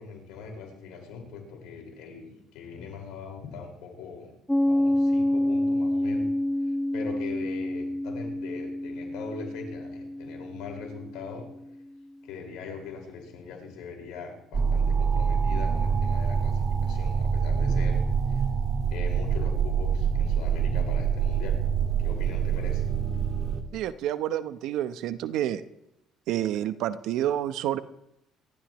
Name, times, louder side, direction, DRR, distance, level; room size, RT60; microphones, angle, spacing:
voice 1, 0.0-4.3 4.7-6.3 6.9-11.4 12.2-18.0 18.3-18.4 18.9-21.6 22.0-22.8, left 5 dB, 75° left, 2 dB, 5.1 m, -41 dB
Piano, 4.5-11.7, left 1 dB, 5° left, 0.4 m, -28 dB
sound 1, 14.5-23.6, right 6 dB, 45° right, 1.8 m, -25 dB
voice 2, 23.7-25.6 26.3-27.8, right 12 dB, 70° right, 12 dB, 0.9 m, -29 dB
27.5 x 13.0 x 3.1 m, 0.86 s
hypercardioid pair, 65°, 0 cm